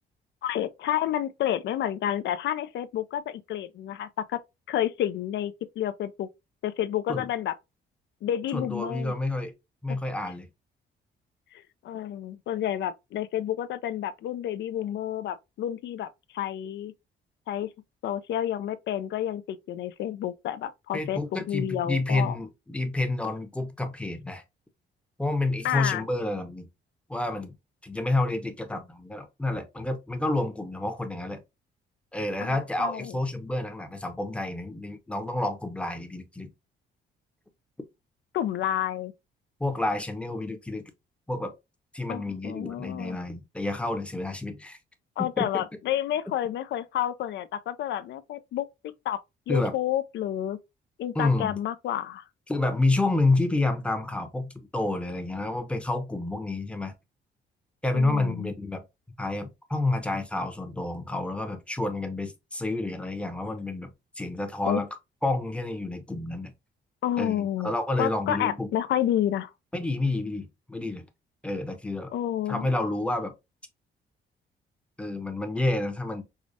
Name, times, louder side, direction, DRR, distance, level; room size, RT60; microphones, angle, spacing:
voice 1, 0.4-4.4 4.7-6.3 6.6-7.6 8.2-9.1 9.9-10.0 11.5-16.9 17.5-17.7 18.0-22.4 25.6-26.0 32.4-33.1 38.3-39.1 42.1-43.2 45.2-48.7 49.1-49.2 49.5-50.6 51.0-52.2 57.9-58.5 64.7-64.8 67.0-67.7 68.0-69.5 72.1-72.7, left 11 dB, 65° left, 0.4 m, -30 dB
voice 2, 8.5-9.5 9.8-10.5 20.9-24.4 25.2-26.7 27.1-27.5 27.8-31.4 32.1-36.5 39.6-40.9 41.3-41.5 41.9-44.8 45.2-45.3 45.5-45.6 49.5-49.7 51.1-51.5 52.5-56.9 57.8-58.8 59.2-63.9 64.2-64.9 65.2-66.5 67.2-68.7 69.7-71.0 71.4-72.1 72.5-73.3 75.0-76.2, left 2 dB, 5° left, 0.7 m, -29 dB
4.8 x 2.0 x 2.5 m
cardioid pair, 90°, 20 cm